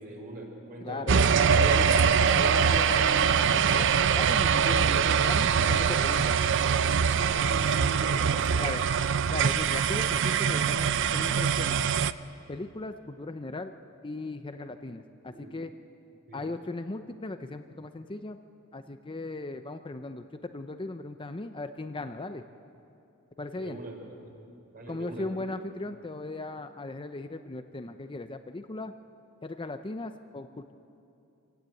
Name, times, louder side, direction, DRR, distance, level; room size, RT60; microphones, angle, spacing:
voice 1, 0.0-1.5 7.1-8.7 15.3-15.5 16.3-16.4 23.6-24.0 24.2-24.3 24.7-25.2, right 1 dB, 45° right, 1 dB, 4.6 m, -41 dB
voice 2, 0.8-3.8 4.1-6.3 8.6-8.9 9.3-11.8 12.5-13.7 14.0-15.7 16.3-18.4 18.7-20.3 20.5-22.4 23.4-23.8 24.9-28.9 29.4-30.7, left 2 dB, 25° left, 8 dB, 0.6 m, -37 dB
sound 1, 1.1-12.1, right 7 dB, 60° right, 0.5 m, -23 dB
25.5 x 16.0 x 9.2 m, 2.7 s
head